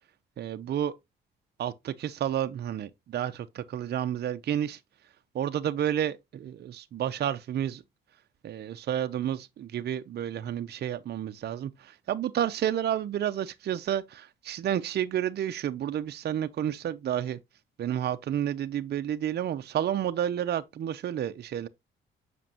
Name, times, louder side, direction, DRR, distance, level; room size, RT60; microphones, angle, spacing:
voice 1, 0.4-0.9 1.6-4.8 5.3-7.8 8.4-17.4 17.8-21.7, right 10 dB, 55° right, 0.7 m, -30 dB
7.4 x 6.0 x 2.9 m
cardioid pair, 90°, 20 cm